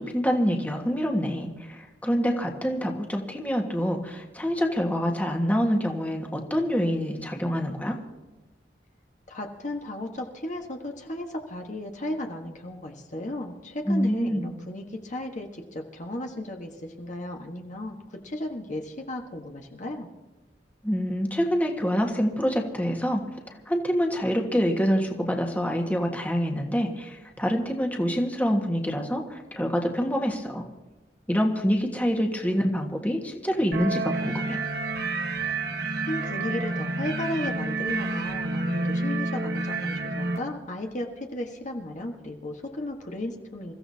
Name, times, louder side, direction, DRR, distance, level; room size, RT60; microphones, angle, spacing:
voice 1, 0.0-8.0 13.9-14.5 20.8-30.6 31.3-34.6, equal, 10° left, 1 dB, 1.6 m, -26 dB
voice 2, 9.3-18.0 18.2-20.1 36.1-43.7, left 1 dB, 45° left, 2 dB, 1.4 m, -35 dB
sound 1, 33.7-40.4, right 2 dB, 65° right, 1.4 m, -29 dB
28.5 x 15.0 x 2.8 m, 1.1 s
head